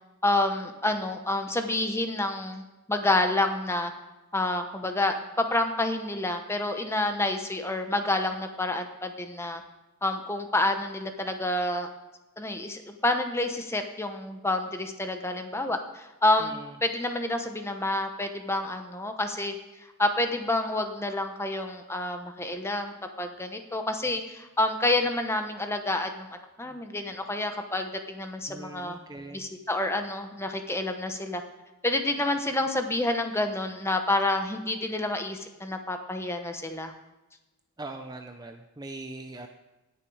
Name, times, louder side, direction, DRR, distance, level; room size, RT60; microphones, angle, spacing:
voice 1, 0.2-3.9 4.3-9.6 10.0-11.9 12.4-16.5 16.8-19.6 20.0-26.3 26.6-29.0 29.3-31.4 31.8-36.9, left 2 dB, 10° left, 6 dB, 0.9 m, -28 dB
voice 2, 16.4-16.8 28.5-29.5 37.8-39.5, right 2 dB, 15° right, 5 dB, 0.5 m, -41 dB
18.0 x 7.1 x 4.8 m, 1.1 s
head